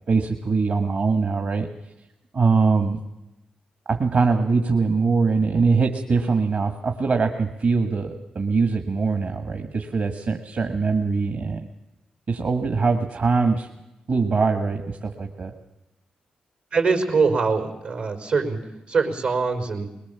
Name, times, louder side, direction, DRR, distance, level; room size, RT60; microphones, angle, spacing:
voice 1, 0.1-1.7 2.3-3.0 3.9-11.6 12.3-13.7 14.1-15.5, right 4 dB, 60° right, 5 dB, 1.7 m, -22 dB
voice 2, 16.7-18.6 18.9-19.9, right 4 dB, 90° right, 1 dB, 4.6 m, -23 dB
21.0 x 20.5 x 7.0 m, 0.95 s
supercardioid pair, 45°, 3 cm